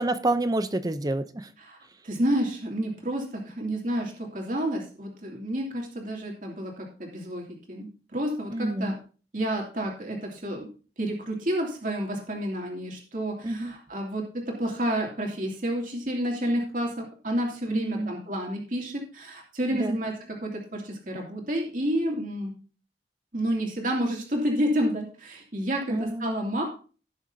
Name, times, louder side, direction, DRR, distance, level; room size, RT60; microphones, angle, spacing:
voice 1, 0.0-1.5 8.5-8.9 13.4-13.7 17.7-18.2 19.7-20.0 25.9-26.5, right 1 dB, 20° right, 0.6 m, -28 dB
voice 2, 2.0-8.9 9.3-10.7 11.0-22.5 23.3-26.7, right 1 dB, 50° right, 2.6 m, -30 dB
17.0 x 7.0 x 2.7 m
head